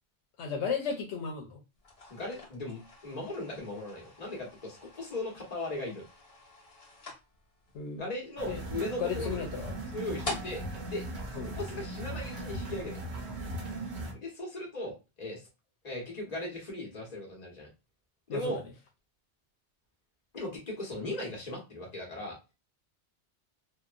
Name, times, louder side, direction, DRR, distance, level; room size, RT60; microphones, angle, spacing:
voice 1, 0.4-1.6 7.7-8.0 8.5-8.6 9.0-9.7 11.3-11.6 18.3-18.6, left 6 dB, 80° left, 2 dB, 0.9 m, -34 dB
sound 1, 1.8-12.2, left 2 dB, 60° left, 1.4 m, -47 dB
voice 2, 2.1-6.0 7.9-9.4 9.9-11.0 11.4-13.0 14.1-15.4 15.8-17.7 18.3-18.6 20.3-22.4, left 1 dB, 40° left, -2 dB, 1.2 m, -38 dB
sound 2, 8.4-14.1, right 1 dB, 50° right, 0.8 m, -38 dB
2.9 x 2.1 x 2.4 m, 0.26 s
omnidirectional pair, 1.1 m